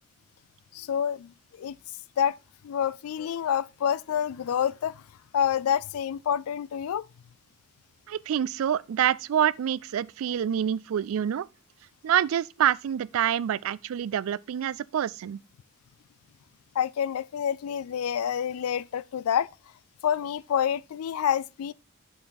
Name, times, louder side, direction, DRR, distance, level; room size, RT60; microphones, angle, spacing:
voice 1, 0.7-1.3 1.6-1.7 2.2-2.3 2.6-5.0 5.3-7.0 16.8-19.5 20.0-21.7, left 8 dB, 80° left, 0.3 m, -27 dB
voice 2, 8.1-11.5 12.0-15.4, right 9 dB, 70° right, 0.3 m, -26 dB
6.8 x 5.4 x 4.0 m
head